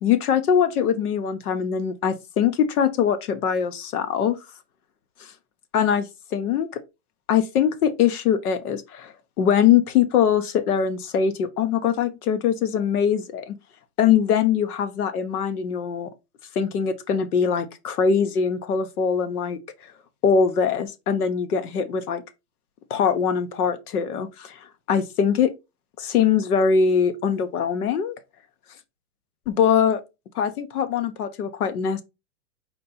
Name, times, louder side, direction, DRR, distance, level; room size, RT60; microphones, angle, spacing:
voice 1, 0.0-4.4 5.7-6.7 7.3-9.1 9.4-13.5 14.0-16.1 16.5-19.6 20.2-22.2 22.9-25.5 26.0-28.1 29.5-30.0 30.3-32.0, left 7 dB, 75° left, 1.1 m, -22 dB
4.3 x 2.8 x 4.1 m
hypercardioid pair, 135°, 44 cm